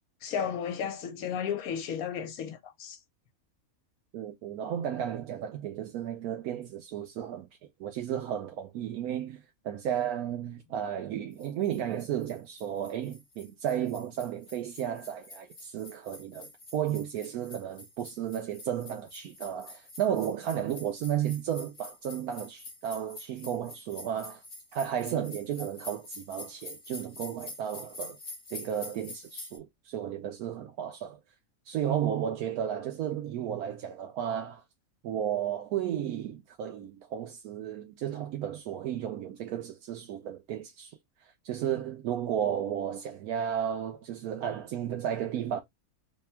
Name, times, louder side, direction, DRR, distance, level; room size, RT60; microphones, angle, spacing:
voice 1, 0.2-3.0, left 7 dB, 75° left, 1.2 m, -33 dB
voice 2, 4.1-24.4 24.7-28.2 28.5-31.2 31.6-34.6 35.0-45.6, right 10 dB, 85° right, 1.1 m, -33 dB
sound 1, 11.4-29.6, left 2 dB, 35° left, 1.0 m, -47 dB
3.4 x 2.2 x 4.2 m
omnidirectional pair, 1.5 m